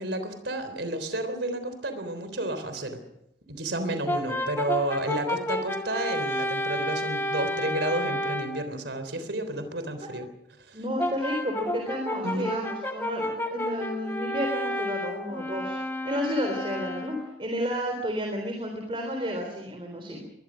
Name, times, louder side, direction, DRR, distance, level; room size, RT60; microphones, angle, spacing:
voice 1, 0.0-3.0 3.5-10.3 10.7-10.8 12.2-12.5, right 1 dB, 85° right, 10 dB, 3.6 m, -31 dB
Brass instrument, 4.1-8.6 11.0-17.3, left 1 dB, 15° left, 2.0 m, -31 dB
voice 2, 10.7-15.8 16.0-20.3, equal, 30° right, 3 dB, 3.7 m, -31 dB
22.5 x 21.0 x 6.3 m, 0.81 s
head